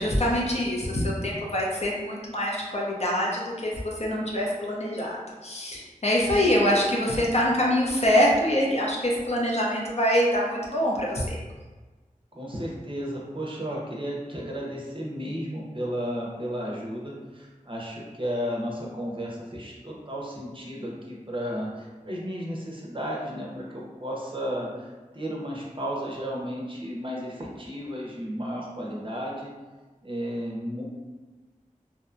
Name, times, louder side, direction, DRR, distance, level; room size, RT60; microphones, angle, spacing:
voice 1, 0.0-5.2 5.4-11.3, equal, 50° left, -3 dB, 0.6 m, -24 dB
voice 2, 12.3-29.5 30.0-30.8, equal, 40° right, -3 dB, 0.6 m, -33 dB
2.7 x 2.1 x 2.5 m, 1.3 s
wide cardioid pair, 45°, 14 cm